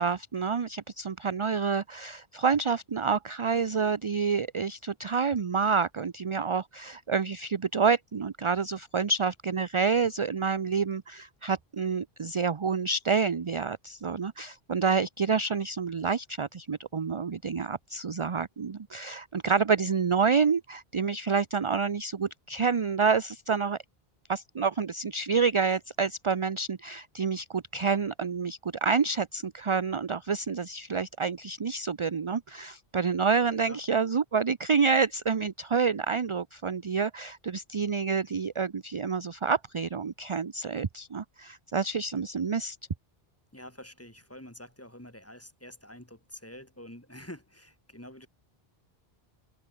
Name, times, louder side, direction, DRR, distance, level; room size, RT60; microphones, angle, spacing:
voice 1, 0.0-23.8 24.3-42.8, right 5 dB, 35° right, 0.6 m, -28 dB
voice 2, 43.5-48.3, left 1 dB, 15° left, 3.1 m, -47 dB
omnidirectional pair, 1.0 m